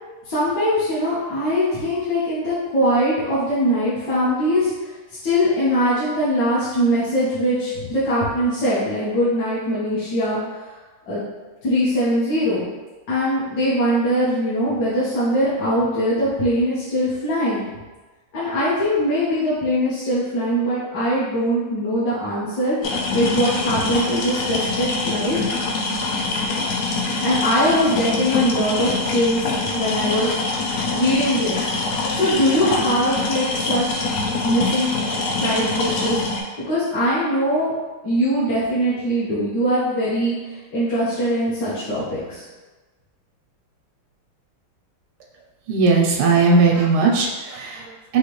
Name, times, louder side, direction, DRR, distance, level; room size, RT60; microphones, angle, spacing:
voice 1, 0.2-4.7 5.2-10.4 11.1-11.2 11.6-12.6 13.1-17.7 18.3-22.8 23.1-25.4 27.2-30.3 30.9-31.7 32.1-34.9 35.4-36.2 36.7-37.7 38.0-40.3 40.7-42.4, equal, 55° left, -11 dB, 1.5 m, -21 dB
sound 1, 22.8-36.4, left 3 dB, 90° left, 0.7 m, -24 dB
voice 2, 45.7-48.2, right 4 dB, 85° right, 0 dB, 1.5 m, -18 dB
4.9 x 3.0 x 3.0 m, 1.2 s
omnidirectional pair, 2.4 m